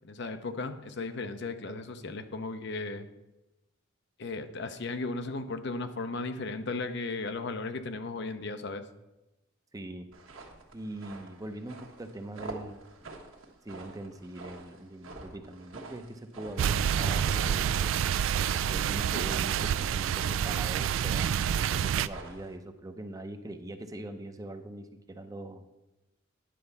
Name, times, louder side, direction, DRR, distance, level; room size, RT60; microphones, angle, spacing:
voice 1, 0.0-3.1 4.2-8.8, left 3 dB, 55° left, 9 dB, 0.6 m, -36 dB
voice 2, 9.7-10.1 10.7-13.1 13.6-18.0 18.5-25.6, right 1 dB, 15° right, 7 dB, 0.6 m, -42 dB
sound 1, 10.1-22.5, right 3 dB, 90° right, 1.4 m, -47 dB
sound 2, 16.6-22.1, right 9 dB, 75° right, 0.3 m, -28 dB
10.0 x 4.4 x 6.8 m, 1.0 s
head